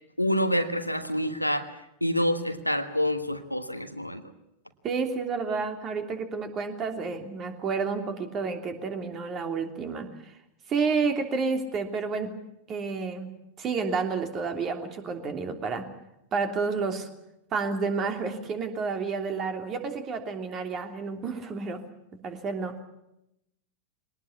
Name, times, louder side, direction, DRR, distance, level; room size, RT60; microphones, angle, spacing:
voice 1, 0.2-4.2, equal, 90° left, 8 dB, 1.5 m, -27 dB
voice 2, 4.8-10.1 10.7-12.3 12.7-13.3 13.6-15.8 16.3-17.1 17.5-21.8 22.2-22.8, right 5 dB, 30° right, 6 dB, 3.1 m, -30 dB
23.0 x 19.0 x 8.4 m, 0.84 s
figure-of-eight pair, 90°, 0 cm